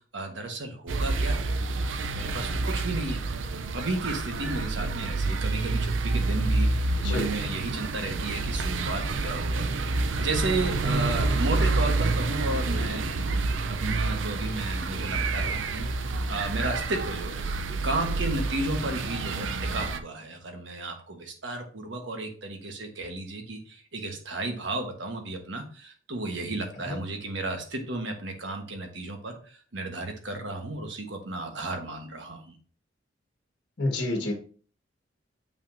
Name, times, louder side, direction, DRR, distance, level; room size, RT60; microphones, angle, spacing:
voice 1, 0.1-1.4 2.1-3.2 3.7-9.9 10.2-17.4 17.8-32.5, right 2 dB, 75° right, 4 dB, 1.3 m, -33 dB
sound 1, 0.9-20.0, right 3 dB, 90° right, 0.6 m, -28 dB
voice 2, 33.8-34.3, left 2 dB, 60° left, 1 dB, 1.6 m, -28 dB
6.8 x 5.9 x 2.6 m, 0.42 s
head